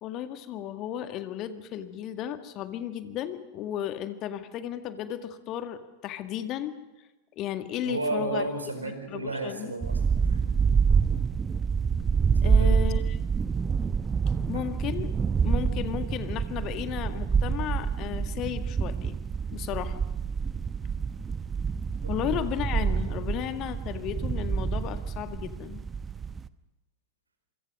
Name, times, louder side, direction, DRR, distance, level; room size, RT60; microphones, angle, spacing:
voice 1, 0.0-6.7 7.3-8.4 8.8-9.7 12.4-13.2 14.5-15.1 15.4-19.2 19.5-20.0 22.1-25.8, left 11 dB, 35° left, 9 dB, 1.8 m, -34 dB
voice 2, 7.8-10.4 12.4-12.8 14.5-14.6 22.0-22.1, right 2 dB, 80° right, 7 dB, 4.6 m, -33 dB
sound 1, 9.8-26.5, right 6 dB, 20° right, 0.9 m, -27 dB
27.0 x 25.0 x 6.5 m, 1.0 s
figure-of-eight pair, 90°, 0 cm